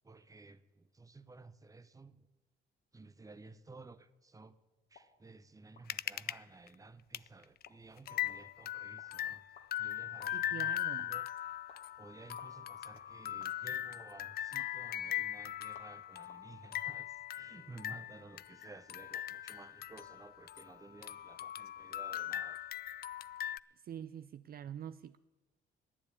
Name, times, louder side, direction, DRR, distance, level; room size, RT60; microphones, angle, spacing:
voice 1, 0.0-2.2 2.9-4.6 4.9-9.4 9.8-10.7 11.0-11.3 12.0-22.6, right 3 dB, 15° right, 0.8 m, -55 dB
sound 1, 4.9-17.0, left 5 dB, 70° left, 1.8 m, -65 dB
sound 2, 5.9-6.4 6.7-6.8 7.1-7.3 7.6-7.7 8.1-20.8 21.0-23.6, left 12 dB, 50° left, 0.4 m, -40 dB
voice 2, 10.3-11.1 23.8-25.2, right 9 dB, 50° right, 0.4 m, -45 dB
11.0 x 9.6 x 8.7 m
cardioid pair, 90°, 20 cm